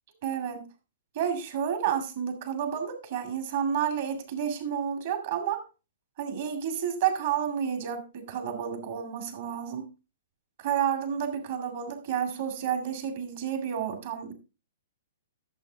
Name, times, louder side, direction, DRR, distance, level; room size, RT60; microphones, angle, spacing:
voice 1, 0.2-0.7 1.1-5.6 6.2-9.9 10.6-14.3, right 8 dB, 50° right, 2.2 m, -30 dB
12.5 x 7.3 x 3.4 m
figure-of-eight pair, 115°, 0 cm